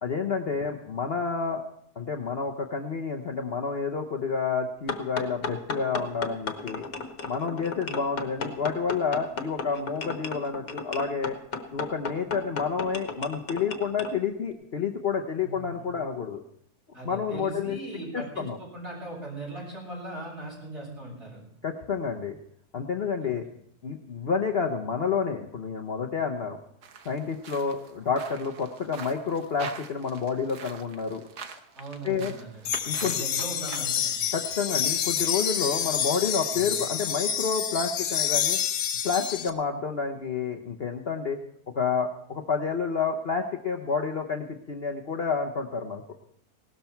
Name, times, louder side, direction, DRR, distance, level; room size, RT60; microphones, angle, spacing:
voice 1, 0.0-1.6 2.0-6.8 7.2-11.4 11.7-16.4 17.0-17.8 18.4-18.6 21.6-22.4 22.7-23.4 23.8-26.6 27.0-31.2 32.0-32.3 32.8-33.2 34.3-38.6 39.0-41.4 41.7-46.0, left 5 dB, 45° left, 2 dB, 1.0 m, -29 dB
sound 1, 4.9-14.1, left 4 dB, 70° left, 1.7 m, -35 dB
voice 2, 15.4-15.9 16.9-21.4 23.2-23.3 31.7-32.7 32.9-34.2 36.5-36.7, right 1 dB, 45° right, -4 dB, 8.2 m, -39 dB
sound 2, 26.8-33.8, right 6 dB, 75° right, 1.6 m, -44 dB
sound 3, 32.7-39.5, left 9 dB, 85° left, 1.5 m, -28 dB
17.5 x 13.0 x 4.5 m, 0.70 s
omnidirectional pair, 1.7 m